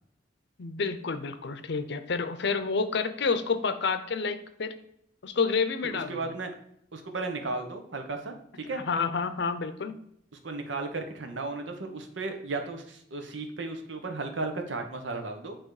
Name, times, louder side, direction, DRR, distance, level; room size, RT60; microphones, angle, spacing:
voice 1, 0.6-4.8 5.2-6.2 8.9-10.0, left 5 dB, 65° left, 11 dB, 0.6 m, -29 dB
voice 2, 5.8-6.5 6.9-8.3 8.7-8.8 10.4-15.6, right 3 dB, 85° right, 5 dB, 1.0 m, -35 dB
8.9 x 3.1 x 4.8 m, 0.70 s
head